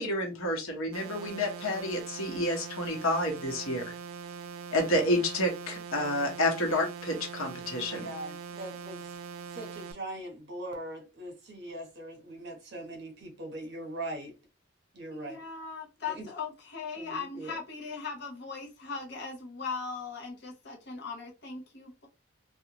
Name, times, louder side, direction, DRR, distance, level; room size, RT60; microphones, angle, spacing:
voice 1, 0.0-3.9 4.7-8.1, left 1 dB, 85° left, 1.1 m, -29 dB
sound 1, 0.9-9.9, right 6 dB, 85° right, 0.4 m, -42 dB
voice 2, 7.9-9.1 9.5-14.4 14.9-15.4 16.1-16.3 17.0-17.6, right 1 dB, 55° right, 1.0 m, -41 dB
voice 3, 15.1-22.1, left 5 dB, 50° left, 0.7 m, -39 dB
2.4 x 2.3 x 2.9 m
head